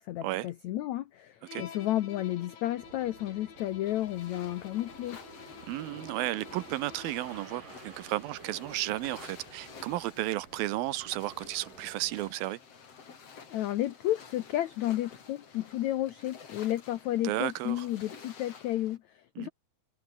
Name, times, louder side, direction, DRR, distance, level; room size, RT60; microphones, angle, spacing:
voice 1, 0.0-5.2 13.5-19.5, left 14 dB, 85° left, 1.6 m, -32 dB
Bowed string instrument, 1.5-7.4, left 7 dB, 65° left, 4.8 m, -50 dB
sound 1, 2.8-12.3, right 5 dB, 60° right, 6.5 m, -52 dB
sound 2, 3.8-19.0, left 6 dB, 40° left, 3.8 m, -52 dB
voice 2, 5.7-12.6 17.2-17.9 19.4-19.5, right 16 dB, 75° right, 2.5 m, -33 dB
omnidirectional pair, 4.4 m